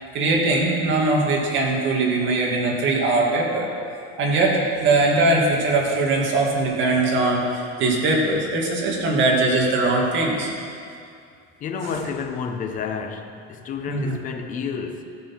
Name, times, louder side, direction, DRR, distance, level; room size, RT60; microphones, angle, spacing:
voice 1, 0.1-3.7 4.2-10.5 13.9-14.1, right 2 dB, 35° right, -2 dB, 2.2 m, -21 dB
voice 2, 11.6-15.0, left 6 dB, 25° left, 5 dB, 0.8 m, -30 dB
15.5 x 6.8 x 5.8 m, 2.4 s
cardioid pair, 170°, 32 cm